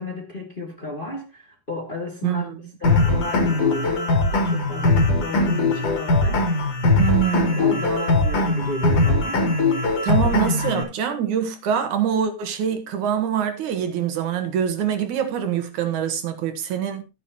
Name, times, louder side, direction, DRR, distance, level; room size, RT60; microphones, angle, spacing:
voice 1, 0.0-6.8 7.5-9.4 10.0-10.9, left 1 dB, 20° left, 1.8 m, -33 dB
voice 2, 2.2-2.6 7.0-7.6 10.0-17.0, right 9 dB, 70° right, 2.6 m, -24 dB
sound 1, 2.8-10.8, left 2 dB, 50° left, 3.7 m, -20 dB
13.5 x 9.6 x 2.9 m
omnidirectional pair, 3.7 m